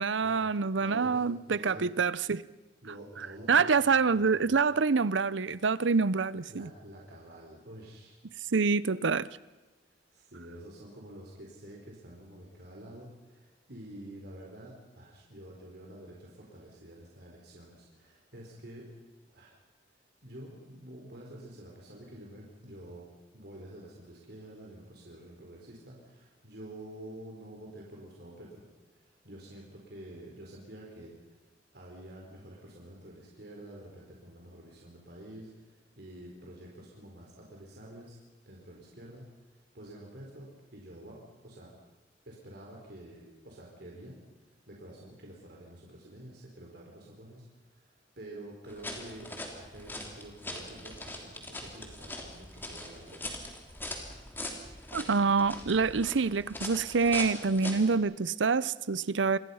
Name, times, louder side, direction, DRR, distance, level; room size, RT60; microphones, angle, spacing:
voice 1, 0.0-2.4 3.5-6.7 8.5-9.3 54.9-59.4, right 4 dB, 80° right, 0.7 m, -26 dB
voice 2, 0.8-1.8 2.8-3.6 3.9-4.6 6.5-8.2 10.1-18.9 19.3-19.6 20.2-23.1 23.3-31.4 31.7-38.2 38.4-41.7 42.3-44.2 44.5-53.3, right 1 dB, 60° right, 4.2 m, -48 dB
sound 1, 48.7-58.0, left 1 dB, 10° left, 3.1 m, -42 dB
27.5 x 21.5 x 5.7 m
head